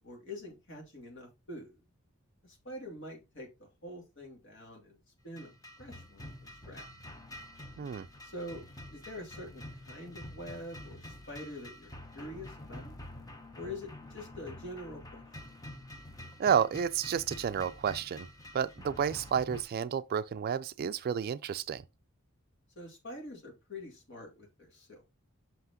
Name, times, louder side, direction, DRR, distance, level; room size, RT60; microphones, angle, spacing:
voice 1, 0.0-1.8 2.4-5.0 5.2-6.9 8.2-8.6 8.9-12.9 13.5-15.2 22.8-25.0, left 1 dB, 60° left, 2.3 m, -45 dB
sound 1, 5.3-19.6, left 1 dB, 15° left, 0.8 m, -48 dB
voice 2, 16.4-18.3 18.5-21.8, right 7 dB, 45° right, 0.3 m, -31 dB
5.8 x 5.7 x 2.8 m
head